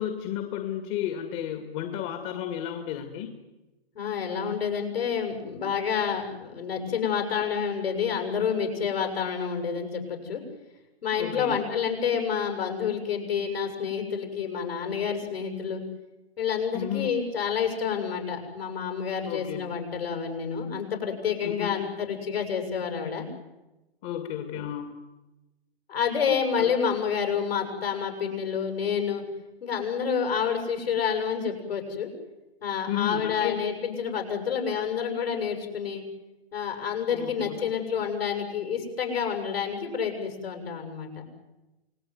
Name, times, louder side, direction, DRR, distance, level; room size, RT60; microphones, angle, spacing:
voice 1, 0.0-3.3 11.2-11.6 16.7-17.1 19.3-19.6 21.4-21.9 24.0-24.9 26.6-26.7 32.9-33.6 37.1-37.6, left 10 dB, 35° left, 7 dB, 2.3 m, -32 dB
voice 2, 3.9-10.4 11.0-15.8 16.4-23.3 25.9-29.2 29.6-32.1 32.6-36.0 36.5-41.1, left 7 dB, 65° left, 5 dB, 7.4 m, -29 dB
28.5 x 19.5 x 9.6 m, 1.1 s
figure-of-eight pair, 130°, 32 cm